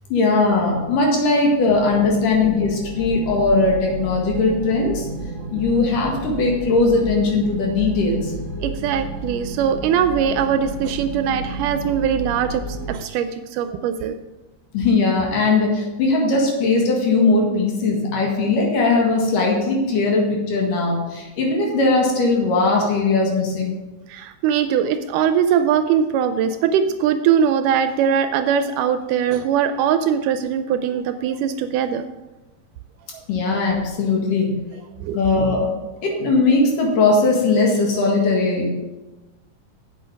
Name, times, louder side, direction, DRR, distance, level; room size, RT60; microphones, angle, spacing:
voice 1, 0.1-5.1 5.5-8.3 14.7-23.7 33.3-34.6 35.1-35.7 36.0-38.7, left 3 dB, 70° left, -1 dB, 3.3 m, -19 dB
sound 1, 2.4-12.9, right 2 dB, 45° right, 1.8 m, -32 dB
voice 2, 8.6-12.6 12.9-14.1 24.1-32.0 35.0-35.2, right 8 dB, 80° right, 9 dB, 2.0 m, -21 dB
8.3 x 7.8 x 5.2 m, 1.1 s
omnidirectional pair, 3.9 m